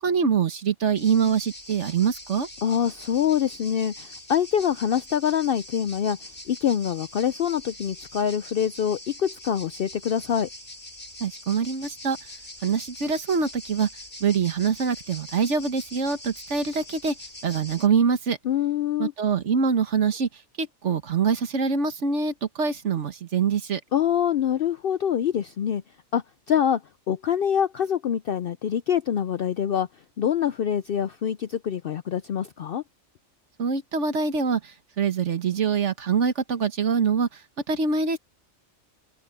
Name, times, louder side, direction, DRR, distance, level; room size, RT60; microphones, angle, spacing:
voice 1, 0.0-2.5 11.2-12.2 12.6-13.9 14.2-17.1 17.4-18.4 19.0-20.3 20.6-23.8 33.6-34.6 35.0-37.3 37.7-38.2, right 6 dB, 60° right, 1.6 m, -24 dB
sound 1, 1.0-17.9, left 1 dB, 40° left, 6.1 m, -43 dB
voice 2, 2.6-6.2 6.5-10.5 18.4-19.1 23.9-25.8 26.1-26.8 27.1-29.9 30.2-32.8, left 9 dB, 60° left, 0.6 m, -25 dB
open air
omnidirectional pair, 1.4 m